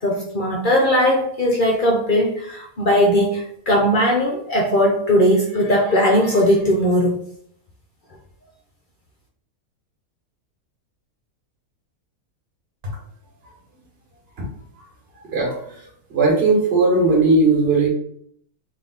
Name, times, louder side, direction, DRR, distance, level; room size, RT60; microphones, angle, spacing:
voice 1, 0.0-7.2, equal, 55° left, -1 dB, 0.5 m, -18 dB
voice 2, 16.1-17.9, right 3 dB, 45° right, -2 dB, 1.4 m, -17 dB
3.4 x 2.8 x 3.9 m, 0.65 s
omnidirectional pair, 1.6 m